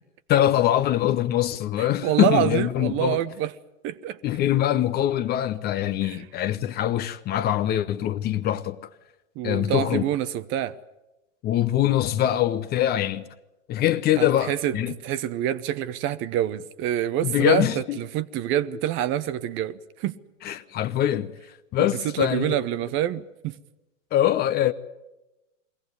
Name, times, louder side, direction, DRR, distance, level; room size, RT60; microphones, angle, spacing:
voice 1, 0.3-3.2 4.2-8.8 9.4-10.0 11.4-13.2 13.7-14.9 17.2-18.0 20.4-21.3 21.7-22.6 24.1-24.7, left 12 dB, 25° left, 0.7 m, -23 dB
voice 2, 1.8-3.5 3.8-4.2 6.0-6.2 9.4-10.8 14.2-14.8 15.0-20.2 21.8-23.6, right 11 dB, 30° right, 0.8 m, -27 dB
22.5 x 16.5 x 9.5 m
hypercardioid pair, 120°, 39 cm